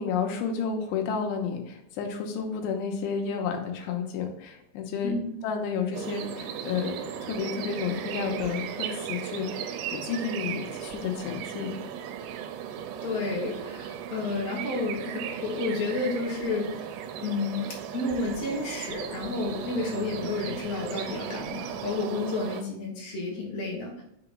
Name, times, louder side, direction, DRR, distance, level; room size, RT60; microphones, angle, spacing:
voice 1, 0.0-5.1 5.4-7.0 7.2-11.8, left 6 dB, 85° left, 4 dB, 2.9 m, -31 dB
sound 1, 5.9-22.6, right 9 dB, 85° right, 2.4 m, -36 dB
voice 2, 13.0-24.0, left 3 dB, 70° left, -3 dB, 1.6 m, -31 dB
6.6 x 3.0 x 5.0 m, 0.77 s
omnidirectional pair, 5.0 m